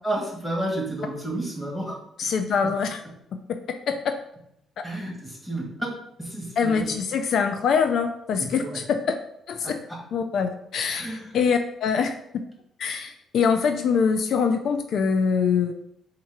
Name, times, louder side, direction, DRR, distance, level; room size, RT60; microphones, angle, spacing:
voice 1, 0.0-2.0 4.8-5.9 6.2-7.0 8.4-8.8 9.6-10.0 10.9-11.3, right 1 dB, 5° left, -1 dB, 1.5 m, -31 dB
voice 2, 2.2-3.0 3.9-4.1 6.6-9.0 9.5-9.8 10.1-12.1 12.8-15.7, left 6 dB, 70° left, 7 dB, 0.3 m, -24 dB
3.6 x 2.9 x 4.5 m, 0.77 s
cardioid pair, 90°, 0 cm